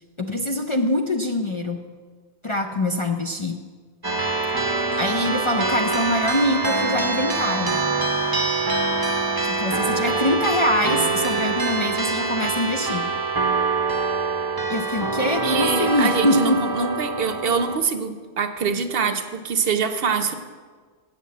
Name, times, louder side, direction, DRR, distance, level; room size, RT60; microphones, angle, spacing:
voice 1, 0.2-1.9 2.4-3.6 5.0-7.8 9.4-13.1 14.7-16.6, left 1 dB, 40° left, 3 dB, 0.5 m, -24 dB
sound 1, 4.0-17.8, right 3 dB, 25° right, 0.7 m, -24 dB
voice 2, 15.4-20.3, right 5 dB, 65° right, 9 dB, 0.9 m, -24 dB
7.5 x 7.4 x 8.2 m, 1.5 s
omnidirectional pair, 1.1 m